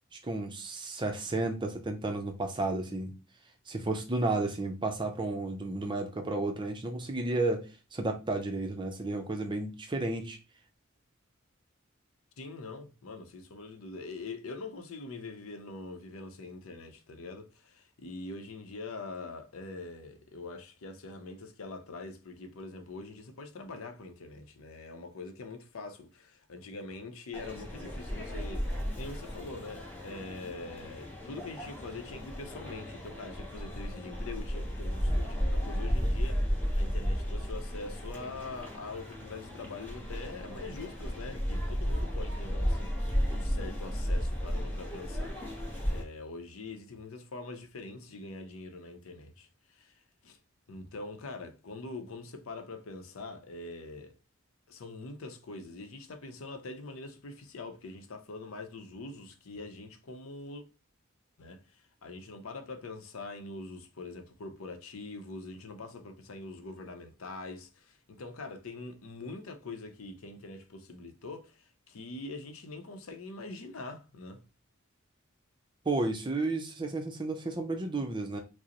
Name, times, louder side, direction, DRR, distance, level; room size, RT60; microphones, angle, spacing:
voice 1, 0.1-3.1 3.7-10.4 75.9-78.4, right 2 dB, 25° right, 0.5 m, -32 dB
voice 2, 12.4-49.9 50.2-50.4 50.7-54.2 54.7-60.6 61.4-74.4, left 3 dB, 85° left, 0.6 m, -44 dB
sound 1, 27.3-46.0, equal, 10° left, 1.0 m, -34 dB
4.8 x 2.0 x 2.9 m
head